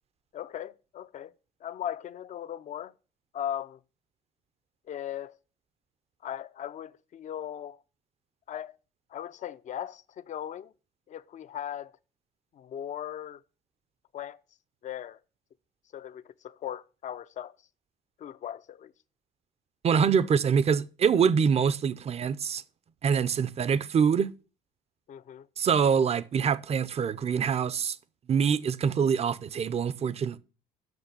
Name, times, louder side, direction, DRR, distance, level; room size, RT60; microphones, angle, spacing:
voice 1, 0.3-1.3 1.6-2.9 3.3-3.8 4.9-5.4 6.2-7.8 8.5-8.8 9.1-10.7 11.1-11.9 12.5-13.4 14.1-14.4 14.8-15.2 15.9-17.6 18.2-18.9 25.1-25.5, left 10 dB, 45° left, 0.6 m, -38 dB
voice 2, 19.8-22.6 23.0-24.3 25.6-28.0 28.3-30.4, right 6 dB, 40° right, 0.7 m, -25 dB
8.0 x 6.4 x 6.9 m
cardioid pair, 110°, 17 cm